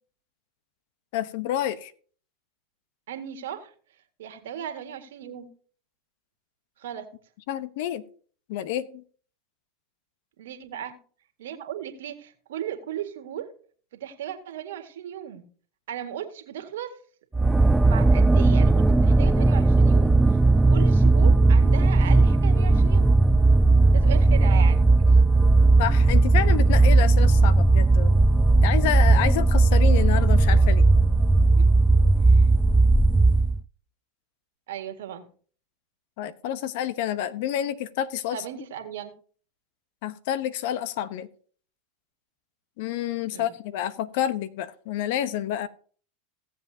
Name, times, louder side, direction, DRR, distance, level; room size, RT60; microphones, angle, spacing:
voice 1, 1.1-1.9 7.5-8.0 8.5-9.0 25.8-28.2 28.6-30.8 36.2-38.4 40.0-41.3 42.8-45.7, left 11 dB, 65° left, 14 dB, 0.9 m, -29 dB
voice 2, 3.1-3.7 4.2-5.5 6.8-7.1 10.4-11.0 11.4-13.5 13.9-15.4 15.9-17.0 17.8-23.1 23.9-25.4 31.6-31.7 32.2-32.5 34.7-35.3 38.3-39.1 43.3-43.5, right 10 dB, 75° right, 6 dB, 1.8 m, -36 dB
sound 1, 17.3-33.6, right 3 dB, 10° right, 0.3 m, -17 dB
17.0 x 7.6 x 2.8 m, 0.43 s
hypercardioid pair, 95°, 0 cm